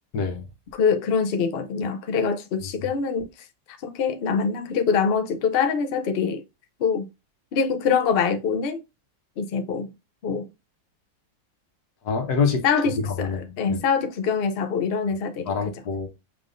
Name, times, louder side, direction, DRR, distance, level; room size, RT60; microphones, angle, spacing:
voice 1, 0.1-0.5 2.6-2.7 12.0-12.6 13.0-13.8 15.4-16.1, left 5 dB, 65° left, 1.5 m, -26 dB
voice 2, 0.7-3.3 3.7-6.4 6.8-7.1 7.5-8.8 9.4-9.9 10.2-10.5 12.6-15.5, left 6 dB, 85° left, 0.5 m, -24 dB
5.9 x 3.6 x 2.5 m
omnidirectional pair, 1.9 m